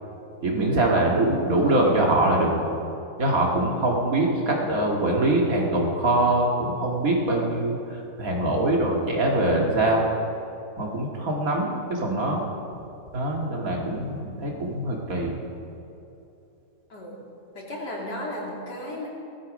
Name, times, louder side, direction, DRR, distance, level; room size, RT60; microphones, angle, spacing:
voice 1, 0.4-2.5 3.2-7.8 8.2-10.0 10.8-12.5 13.1-15.3, right 1 dB, 55° right, -1 dB, 2.4 m, -23 dB
voice 2, 17.5-19.1, left 1 dB, 85° left, -3 dB, 3.4 m, -35 dB
17.5 x 13.0 x 5.2 m, 2.9 s
omnidirectional pair, 1.8 m